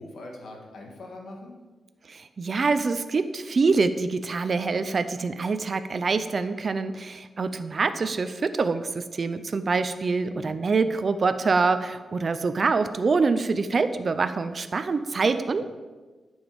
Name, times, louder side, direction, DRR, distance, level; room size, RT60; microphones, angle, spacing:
voice 1, 0.0-1.6 10.2-10.6 15.6-15.7, left 2 dB, 70° left, 1 dB, 2.1 m, -42 dB
voice 2, 2.1-15.6, right 4 dB, 45° right, 10 dB, 0.5 m, -25 dB
10.5 x 7.1 x 5.2 m, 1.3 s
wide cardioid pair, 115°, 0 cm